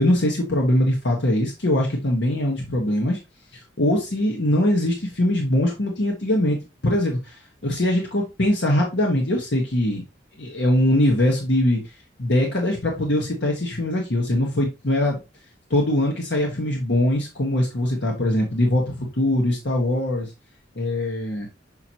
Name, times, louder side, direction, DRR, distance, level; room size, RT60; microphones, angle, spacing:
voice 1, 0.0-3.2 3.5-6.6 6.8-10.0 10.4-11.9 12.2-15.2 15.7-20.3 20.8-21.5, left 1 dB, 65° left, 0 dB, 1.3 m, -22 dB
5.8 x 5.8 x 2.9 m, 0.26 s
head